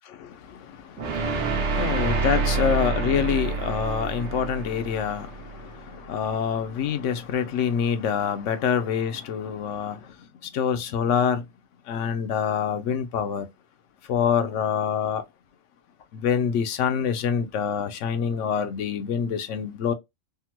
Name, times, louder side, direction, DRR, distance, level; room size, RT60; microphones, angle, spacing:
voice 1, 0.0-10.2 10.4-11.5 11.9-13.5 14.1-15.2 16.1-19.9, left 7 dB, 85° left, 0.9 m, -26 dB
sound 1, 1.0-6.1, right 4 dB, 75° right, 1.0 m, -27 dB
3.5 x 2.1 x 2.9 m
omnidirectional pair, 1.2 m